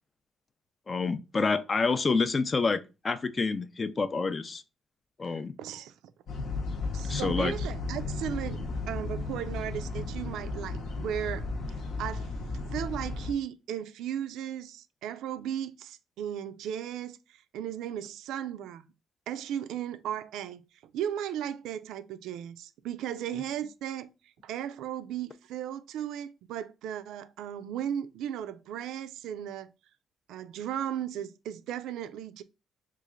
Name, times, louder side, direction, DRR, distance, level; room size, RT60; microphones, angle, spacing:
voice 1, 0.9-4.6 5.2-5.5 7.1-7.5, left 4 dB, 35° left, 0.3 m, -28 dB
voice 2, 5.2-5.9 6.9-8.6 8.9-11.5 12.0-12.3 12.7-18.9 19.3-20.6 20.9-29.7 30.3-32.4, right 10 dB, 85° right, 0.3 m, -36 dB
sound 1, 6.3-13.3, left 3 dB, 70° left, 0.9 m, -34 dB
3.0 x 2.4 x 3.6 m
cardioid pair, 90°, 0 cm